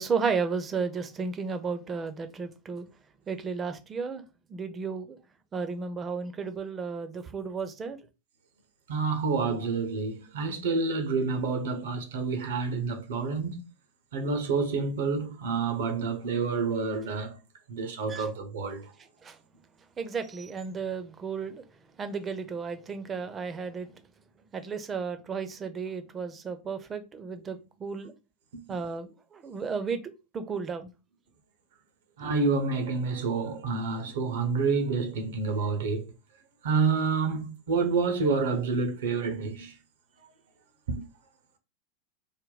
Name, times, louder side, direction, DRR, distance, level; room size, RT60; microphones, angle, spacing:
voice 1, 0.0-2.9 3.3-4.2 4.5-5.2 5.5-8.0 18.1-18.3 19.2-19.4 20.0-21.6 22.0-23.9 24.5-28.1 28.7-30.0 30.3-30.9, right 5 dB, 25° right, 0.6 m, -33 dB
voice 2, 8.9-13.5 14.1-17.4 17.7-18.9 32.2-36.1 36.6-39.7, right 4 dB, 65° right, 0.8 m, -28 dB
3.5 x 2.2 x 3.9 m
figure-of-eight pair, 90°, 0 cm